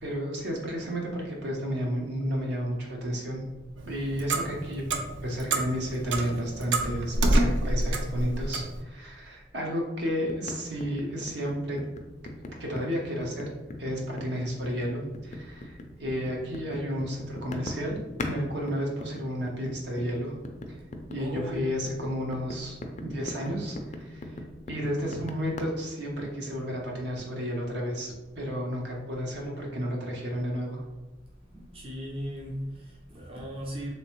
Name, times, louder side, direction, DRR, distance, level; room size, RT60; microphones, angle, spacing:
voice 1, 0.0-3.4 3.9-4.8 5.2-11.8 12.6-13.5 13.8-18.0 18.3-20.3 21.1-22.8 23.0-24.3 24.7-30.8, equal, 65° right, -1 dB, 0.8 m, -32 dB
Clock, 3.8-8.8, right 1 dB, 85° right, 0.5 m, -27 dB
sound 1, 10.3-18.4 18.7-25.6, left 2 dB, 40° left, 0.4 m, -39 dB
voice 2, 21.2-21.6 31.5-33.9, equal, 30° right, -3 dB, 0.5 m, -37 dB
3.3 x 2.9 x 3.0 m, 1.2 s
head